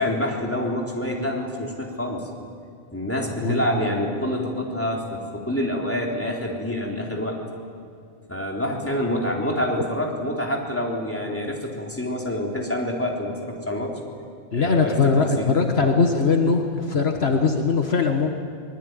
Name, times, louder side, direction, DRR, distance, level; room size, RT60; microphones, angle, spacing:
voice 1, 0.0-2.3 2.9-7.4 8.3-13.9 14.5-15.9 17.3-17.4, left 1 dB, 10° left, -1 dB, 3.7 m, -27 dB
voice 2, 14.5-18.3, left 4 dB, 65° left, 4 dB, 1.8 m, -21 dB
24.5 x 20.5 x 9.4 m, 2.3 s
omnidirectional pair, 1.2 m